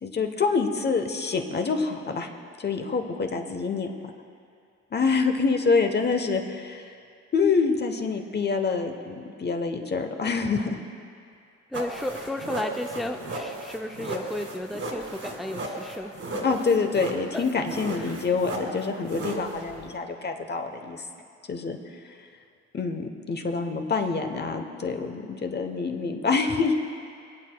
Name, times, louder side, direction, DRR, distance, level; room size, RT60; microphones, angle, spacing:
voice 1, 0.0-2.3 2.6-3.9 4.9-7.0 7.3-10.8 16.4-21.1 21.5-22.3 22.7-26.7, left 4 dB, 35° left, 5 dB, 1.0 m, -26 dB
voice 2, 11.7-16.6 17.3-17.5 17.9-18.1, left 1 dB, ahead, 5 dB, 0.5 m, -34 dB
sound 1, 11.7-19.9, right 2 dB, 45° right, 2.1 m, -35 dB
23.5 x 8.3 x 2.3 m, 2.4 s
cardioid pair, 90°, 30 cm